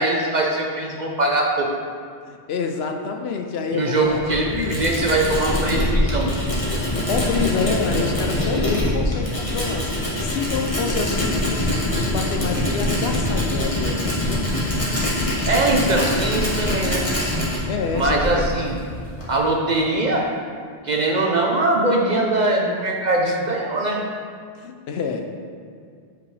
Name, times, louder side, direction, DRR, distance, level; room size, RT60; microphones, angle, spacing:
voice 1, 0.0-1.7 3.7-6.3 15.5-17.1 17.9-18.8 19.3-20.3 20.8-24.0, right 2 dB, 50° right, -1 dB, 0.6 m, -21 dB
voice 2, 2.3-4.2 4.5-4.8 7.0-9.9 10.2-11.5 12.0-14.2 17.7-18.5 23.3-23.4 24.6-25.3, left 5 dB, 70° left, 4 dB, 0.8 m, -27 dB
Tools, 4.0-19.4, left 1 dB, 30° left, 1.4 m, -24 dB
7.9 x 5.2 x 3.2 m, 2.1 s
omnidirectional pair, 1.2 m